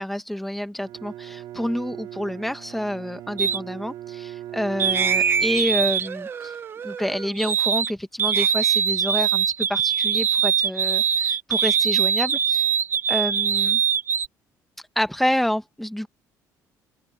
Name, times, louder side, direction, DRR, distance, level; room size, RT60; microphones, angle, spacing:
voice 1, 0.0-6.5 6.8-12.7 13.1-13.8 15.0-16.1, equal, ahead, 1.1 m, -28 dB
Bowed string instrument, 0.8-6.2, right 13 dB, 70° right, 3.2 m, -39 dB
sound 1, 3.4-3.6 4.8-7.9 8.2-14.3, right 7 dB, 35° right, 0.8 m, -22 dB
open air
cardioid pair, 135°, 7 cm